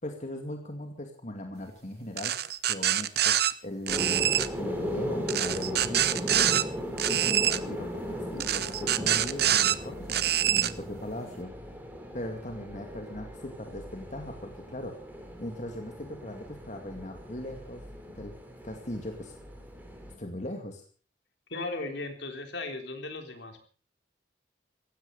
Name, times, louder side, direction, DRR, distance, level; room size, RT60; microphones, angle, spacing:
voice 1, 0.0-6.6 7.1-11.5 12.1-15.0 15.4-18.4 18.6-19.3 20.2-20.8, left 1 dB, 40° left, 4 dB, 2.4 m, -39 dB
sound 1, 2.2-3.5 3.9-4.5 5.3-6.6 7.0-7.6 8.4-9.8 10.1-10.7, right 11 dB, 55° right, 0.9 m, -25 dB
sound 2, 3.9-20.2, equal, 10° right, 3.6 m, -37 dB
voice 2, 21.5-23.6, left 2 dB, 70° left, 5 dB, 3.7 m, -36 dB
16.5 x 16.0 x 5.5 m, 0.40 s
head